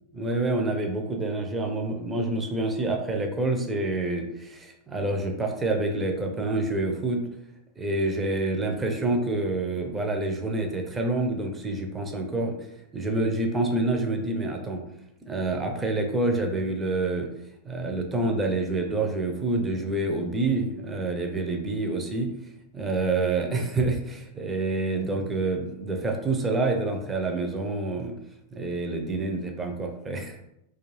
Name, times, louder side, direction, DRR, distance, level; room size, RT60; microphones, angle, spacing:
voice 1, 0.2-7.3 7.8-12.6 12.9-14.8 15.2-17.3 17.6-22.3 22.7-28.2 28.5-30.4, right 2 dB, 15° right, 2 dB, 0.4 m, -27 dB
2.3 x 2.3 x 3.1 m, 0.84 s
figure-of-eight pair, 90°, 0 cm